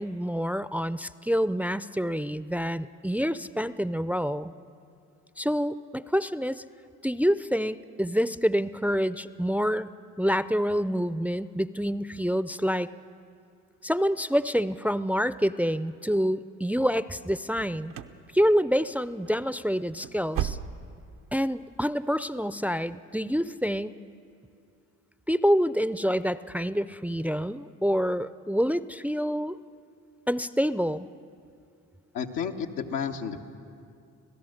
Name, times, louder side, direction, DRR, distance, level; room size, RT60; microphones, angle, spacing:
voice 1, 0.0-4.5 5.4-6.6 7.0-9.9 10.2-12.9 13.8-17.9 18.3-20.6 21.3-24.0 25.3-29.6 30.3-31.1, equal, 5° right, 15 dB, 0.4 m, -27 dB
sound 1, 17.5-18.2 18.5-18.9 19.2-19.4 19.8-21.1 21.4-21.5 22.0-22.1, right 9 dB, 90° right, 0.8 m, -35 dB
voice 2, 32.1-33.4, left 7 dB, 90° left, 2 dB, 1.2 m, -31 dB
26.5 x 17.0 x 6.5 m, 2.4 s
supercardioid pair, 65°, 33 cm